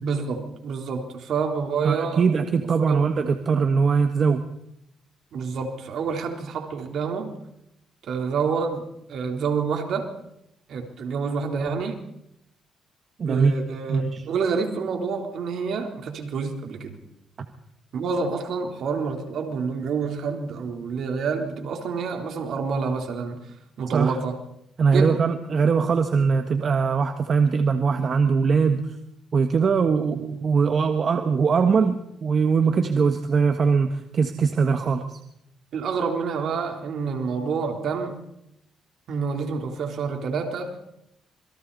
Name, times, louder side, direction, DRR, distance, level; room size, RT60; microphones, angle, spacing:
voice 1, 0.0-2.3 2.8-3.1 5.3-7.3 8.0-10.1 10.7-12.0 13.3-17.0 17.9-23.4 23.8-24.4 24.9-25.2 35.7-38.2 39.1-40.8, right 5 dB, 70° right, 3 dB, 3.8 m, -28 dB
voice 2, 1.8-4.4 13.2-13.5 13.9-14.2 23.9-24.2 24.8-28.8 29.3-35.2, right 5 dB, 50° right, 6 dB, 1.6 m, -21 dB
27.5 x 22.5 x 4.2 m, 0.79 s
cardioid pair, 90°, 0 cm